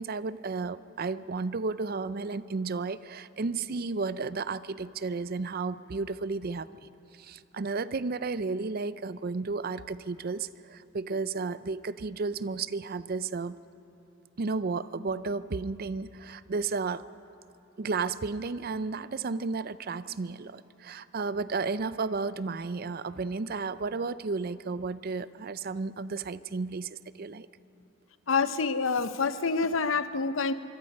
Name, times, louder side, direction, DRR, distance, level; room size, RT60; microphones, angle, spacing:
voice 1, 0.0-13.6 14.4-17.1 17.8-27.5, right 4 dB, 50° right, 15 dB, 0.5 m, -33 dB
voice 2, 28.3-30.5, left 4 dB, 75° left, 12 dB, 0.8 m, -27 dB
25.5 x 23.5 x 5.4 m, 2.7 s
head